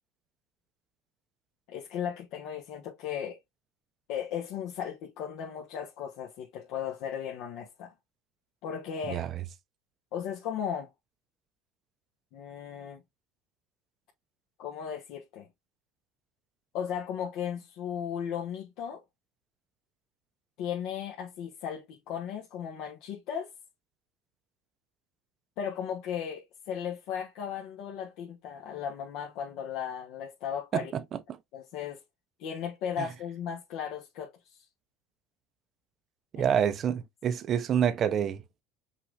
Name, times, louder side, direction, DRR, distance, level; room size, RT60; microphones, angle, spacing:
voice 1, 1.7-3.4 4.1-7.9 8.6-9.2 10.1-10.9 12.3-13.0 14.6-15.5 16.7-19.0 20.6-23.5 25.6-30.9 31.5-32.0 32.4-34.6 36.4-36.5, left 8 dB, 65° left, 1.1 m, -36 dB
voice 2, 9.1-9.4 30.7-31.2 33.0-33.1 36.3-38.4, right 8 dB, 40° right, 0.7 m, -28 dB
5.6 x 2.5 x 3.3 m
supercardioid pair, 130°, 0 cm